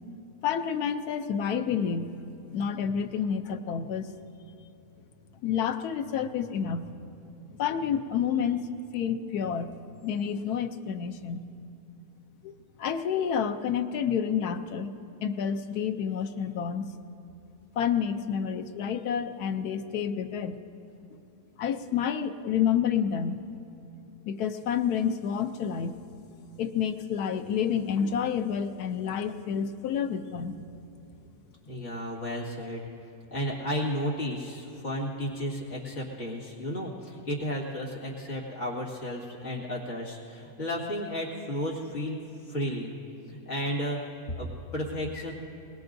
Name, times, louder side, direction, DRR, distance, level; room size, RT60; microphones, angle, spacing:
voice 1, 0.4-2.1 2.5-4.1 5.4-6.9 7.6-8.7 8.9-9.7 10.0-11.5 12.4-14.9 15.2-16.9 17.8-20.6 21.6-23.4 24.3-26.0 26.6-30.7, left 7 dB, 80° left, 8 dB, 1.2 m, -29 dB
voice 2, 31.6-32.8 33.3-42.2 42.5-42.9 43.3-45.3, equal, 50° left, -3 dB, 2.5 m, -33 dB
22.0 x 20.0 x 2.6 m, 2.7 s
omnidirectional pair, 1.6 m